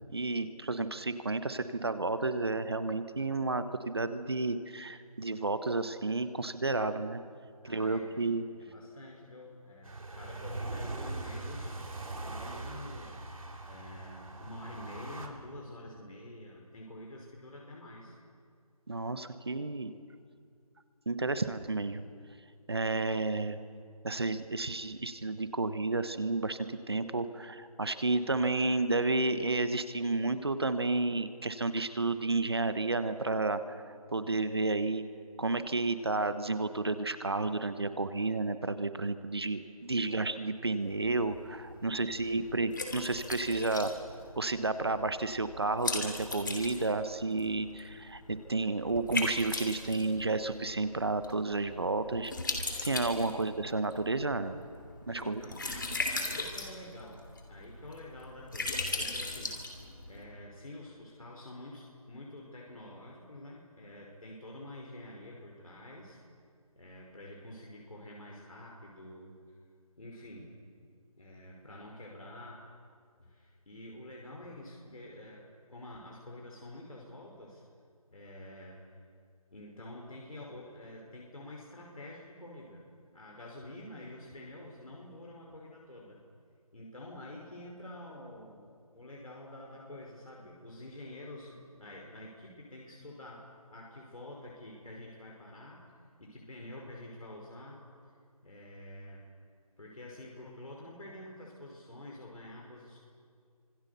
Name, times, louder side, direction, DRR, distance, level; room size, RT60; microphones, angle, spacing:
voice 1, 0.1-7.2 7.6-8.5 18.9-19.9 21.1-22.0 22.7-23.6 24.0-26.6 26.9-33.8 34.1-35.0 35.4-43.9 44.4-52.3 52.8-54.6 55.1-55.4, right 3 dB, 40° right, 11 dB, 1.2 m, -31 dB
voice 2, 7.6-12.0 12.3-13.2 13.6-18.1 40.1-40.2 41.8-42.6 53.3-53.5 55.1-59.6 60.1-66.2 66.8-69.6 70.0-70.6 71.2-72.6 73.2-77.6 78.1-79.1 79.5-82.8 83.1-86.2 86.7-95.9 96.2-97.8 98.4-99.3 99.8-103.0, left 1 dB, 70° left, -2 dB, 5.4 m, -48 dB
sound 1, 9.8-15.3, right 2 dB, 65° right, 3.6 m, -41 dB
Liquid, 40.8-60.2, left 3 dB, 35° left, 3.0 m, -39 dB
28.0 x 26.0 x 6.9 m, 2.2 s
figure-of-eight pair, 180°, 19 cm